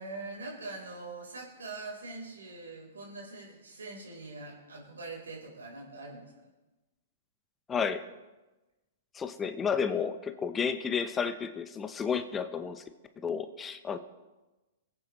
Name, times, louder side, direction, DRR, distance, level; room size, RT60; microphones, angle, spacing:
voice 1, 0.0-6.3, right 3 dB, 80° right, -1 dB, 4.1 m, -43 dB
voice 2, 7.7-8.0 9.1-12.8 13.2-14.0, left 6 dB, 20° left, 10 dB, 0.8 m, -31 dB
23.0 x 8.7 x 3.2 m, 1.1 s
hypercardioid pair, 110°, 0 cm